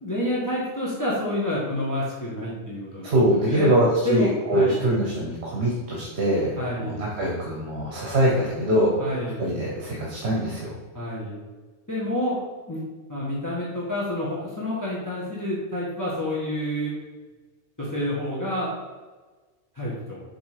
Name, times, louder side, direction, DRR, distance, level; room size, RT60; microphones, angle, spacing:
voice 1, 0.0-3.8 4.0-4.8 6.6-7.0 9.0-9.4 10.9-11.3 11.9-12.4 12.7-12.8 13.1-16.9 17.8-18.7 19.7-20.2, left 1 dB, 15° left, -6 dB, 1.4 m, -28 dB
voice 2, 3.0-9.0 9.4-10.7, right 1 dB, 65° right, -3 dB, 1.4 m, -23 dB
7.2 x 3.6 x 4.9 m, 1.3 s
omnidirectional pair, 1.2 m